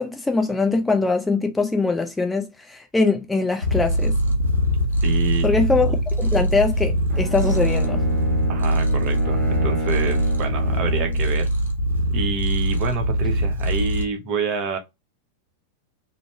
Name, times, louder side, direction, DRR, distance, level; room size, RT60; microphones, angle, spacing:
voice 1, 0.0-4.2 5.4-8.0, left 3 dB, 10° left, 0.5 m, -22 dB
Purr, 3.6-14.0, equal, 75° right, 1.0 m, -22 dB
voice 2, 5.0-5.5 8.5-11.5 12.1-14.8, right 5 dB, 40° right, 0.8 m, -28 dB
Bowed string instrument, 7.1-11.3, right 1 dB, 15° right, 1.3 m, -29 dB
3.0 x 2.6 x 3.2 m
figure-of-eight pair, 90°, 0 cm